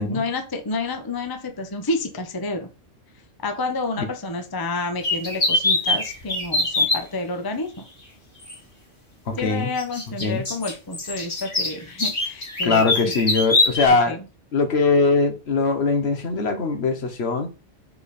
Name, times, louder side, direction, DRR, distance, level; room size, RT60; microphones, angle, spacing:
voice 1, 0.0-2.7 3.4-7.9 9.4-12.8 14.1-14.2, left 3 dB, 20° left, 0.7 m, -29 dB
sound 1, 5.0-7.0 8.5-8.6 9.8-13.9, left 2 dB, 45° left, 1.9 m, -23 dB
voice 2, 9.3-9.7 10.2-10.4 12.6-14.2 14.5-17.5, left 4 dB, 60° left, 1.2 m, -21 dB
5.1 x 4.6 x 4.2 m
omnidirectional pair, 1.3 m